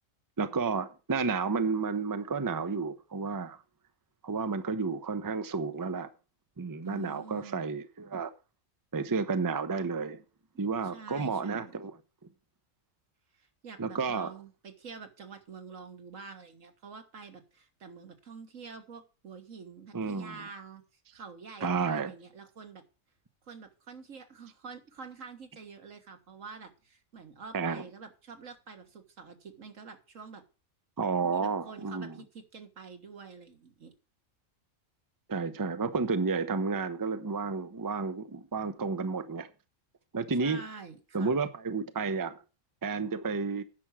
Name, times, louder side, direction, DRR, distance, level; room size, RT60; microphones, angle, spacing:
voice 1, 0.4-3.6 4.2-6.1 6.6-8.3 8.9-10.2 10.6-12.0 13.8-14.3 19.9-20.4 21.6-22.1 27.5-27.8 31.0-32.2 35.3-39.5 40.1-40.6 41.1-42.4 42.8-43.6, right 4 dB, 20° right, 0.6 m, -31 dB
voice 2, 6.8-7.6 10.8-11.7 13.3-20.8 21.1-22.8 23.4-30.4 31.3-33.9 40.4-41.4, right 5 dB, 80° right, 2.0 m, -47 dB
10.0 x 6.1 x 7.4 m
omnidirectional pair, 1.3 m